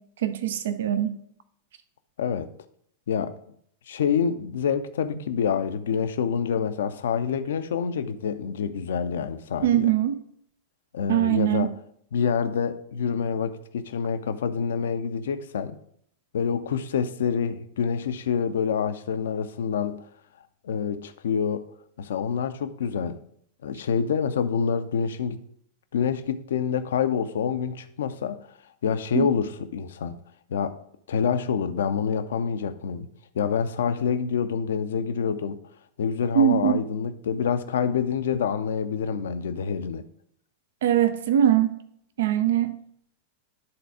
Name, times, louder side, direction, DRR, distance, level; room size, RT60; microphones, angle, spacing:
voice 1, 0.2-1.2 9.6-10.2 11.1-11.7 29.1-29.3 36.3-36.8 40.8-41.8 42.2-42.8, right 11 dB, 60° right, 0.5 m, -22 dB
voice 2, 2.2-2.5 3.1-3.3 3.9-9.9 10.9-11.7 12.1-15.8 16.3-20.0 20.6-21.7 22.0-23.2 23.6-25.4 25.9-28.4 28.8-30.2 30.5-30.8 31.1-33.1 33.3-35.6 36.0-40.0, left 7 dB, 60° left, 0.5 m, -27 dB
10.5 x 4.0 x 4.7 m
figure-of-eight pair, 90°, 0 cm